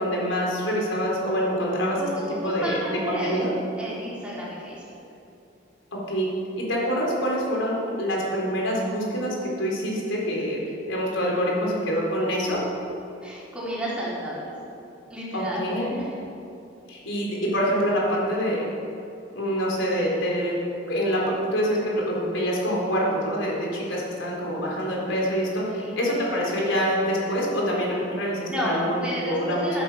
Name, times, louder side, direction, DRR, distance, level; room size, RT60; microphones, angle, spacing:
voice 1, 0.0-2.0 2.4-3.5 5.9-6.3 6.6-10.6 10.9-12.6 15.3-15.9 16.9-18.7 19.3-20.5 20.9-21.2 21.5-29.8, equal, 90° left, -3 dB, 3.9 m, -26 dB
voice 2, 1.9-4.8 12.4-12.6 13.2-14.6 15.1-16.2 25.7-26.0 28.5-29.8, equal, 5° right, -8 dB, 4.1 m, -31 dB
14.5 x 9.4 x 7.1 m, 2.8 s
head